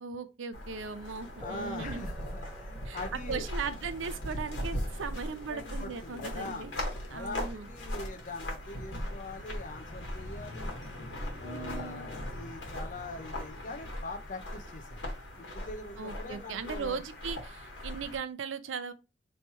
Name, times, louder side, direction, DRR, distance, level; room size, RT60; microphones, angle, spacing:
voice 1, 0.0-2.1 2.8-3.0 3.3-6.7 7.1-7.7 11.4-12.1 16.0-18.9, right 5 dB, 75° right, 0.5 m, -38 dB
sound 1, 0.5-18.2, left 1 dB, 65° left, 1.3 m, -39 dB
voice 2, 1.4-3.5 5.5-6.7 7.1-10.8 11.4-15.0 15.3-17.0, left 2 dB, 40° left, 0.5 m, -43 dB
sound 2, 1.4-9.4, right 2 dB, 5° right, 0.5 m, -54 dB
3.2 x 2.8 x 4.4 m
head